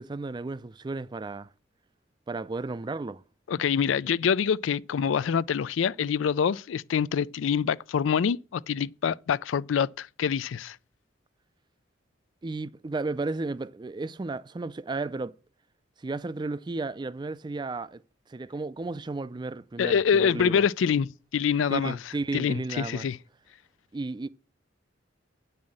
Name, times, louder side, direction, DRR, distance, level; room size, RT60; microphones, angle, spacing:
voice 1, 0.0-1.5 2.3-3.2 12.4-15.3 16.0-18.0 18.3-20.6 21.7-23.1 23.9-24.3, right 3 dB, 25° right, 0.4 m, -33 dB
voice 2, 3.5-10.8 19.8-22.0 22.3-23.2, left 7 dB, 85° left, 0.4 m, -25 dB
8.8 x 5.6 x 7.6 m
head